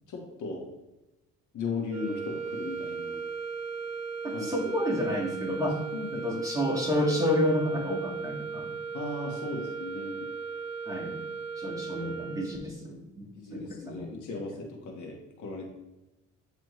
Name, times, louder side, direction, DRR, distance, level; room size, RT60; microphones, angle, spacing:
voice 1, 0.1-0.7 1.5-3.2 4.3-4.5 5.9-6.2 8.9-10.3 13.4-15.7, left 3 dB, 75° left, 0 dB, 1.5 m, -37 dB
sound 1, 1.9-12.8, right 5 dB, 60° right, 0.7 m, -37 dB
voice 2, 4.2-5.8 6.1-8.7 10.8-11.2 11.6-14.1, equal, 10° right, -1 dB, 1.5 m, -30 dB
9.1 x 3.3 x 3.1 m, 0.96 s
cardioid pair, 90°, 30 cm